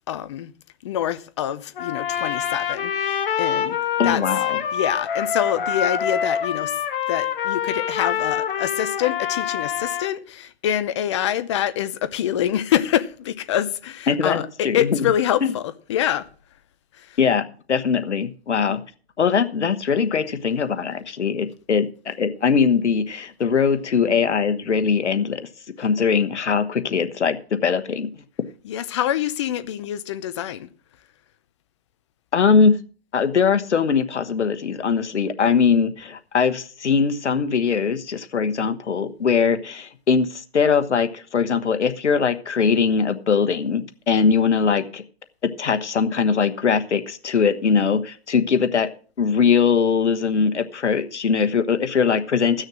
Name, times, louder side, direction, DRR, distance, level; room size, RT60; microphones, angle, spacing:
voice 1, 0.1-0.5 0.8-3.8 4.0-4.2 4.7-6.8 7.1-16.3 16.9-17.2 18.7-18.8 28.6-30.7, left 11 dB, 25° left, 0.6 m, -25 dB
Trumpet, 1.7-10.1, left 8 dB, 50° left, 1.4 m, -25 dB
voice 2, 4.0-4.6 14.1-15.0 17.2-18.8 19.2-25.5 25.8-28.2 32.3-32.8 33.1-45.0 45.6-48.9 49.2-52.6, left 6 dB, 80° left, 1.3 m, -21 dB
15.0 x 6.5 x 6.2 m
hypercardioid pair, 150°, 34 cm